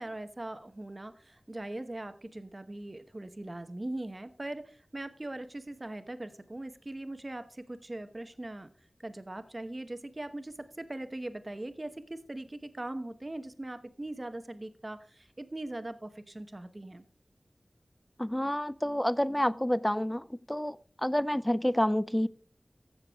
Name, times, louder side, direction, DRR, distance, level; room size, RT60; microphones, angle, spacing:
voice 1, 0.0-8.7 9.0-17.0, right 1 dB, 35° right, 10 dB, 1.0 m, -40 dB
voice 2, 18.2-20.8 21.0-22.3, equal, 10° left, 18 dB, 0.4 m, -28 dB
15.5 x 6.8 x 3.5 m, 0.43 s
wide cardioid pair, 65°, 0 cm